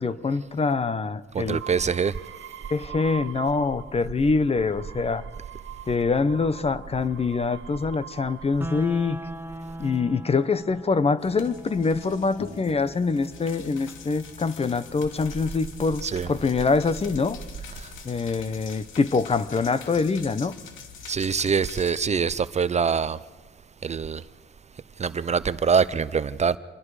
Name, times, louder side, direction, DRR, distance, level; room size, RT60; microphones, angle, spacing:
voice 1, 0.0-1.6 2.7-5.3 5.9-9.2 9.8-17.4 18.0-20.6, left 4 dB, 30° left, 1.0 m, -25 dB
voice 2, 1.3-2.1 16.0-16.3 17.8-17.9 21.1-23.2 23.8-24.2 25.0-26.6, right 6 dB, 35° right, 0.6 m, -24 dB
sound 1, 1.5-4.0 4.4-8.9 9.7-10.2, right 11 dB, 75° right, 1.1 m, -43 dB
sound 2, 8.6-18.6, right 1 dB, 10° right, 0.9 m, -42 dB
sound 3, 11.2-22.0, left 6 dB, 85° left, 2.5 m, -44 dB
27.0 x 21.5 x 4.9 m
cardioid pair, 90°, 20 cm